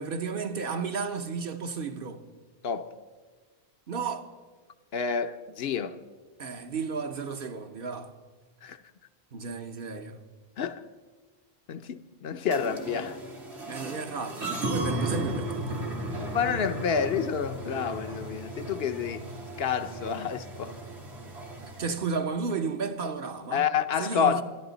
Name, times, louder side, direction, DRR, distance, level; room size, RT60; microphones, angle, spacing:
voice 1, 0.0-2.2 3.9-4.3 6.4-8.1 9.3-10.2 13.7-16.0 21.8-23.6 24.0-24.4, right 5 dB, 60° right, 1.0 m, -33 dB
voice 2, 4.9-6.0 8.6-8.8 10.6-10.8 11.7-13.2 16.3-19.2 19.6-20.8 23.5-24.4, left 7 dB, 70° left, 0.9 m, -29 dB
sound 1, 12.5-21.9, right 2 dB, 85° right, 2.3 m, -35 dB
26.0 x 10.0 x 4.0 m
omnidirectional pair, 1.1 m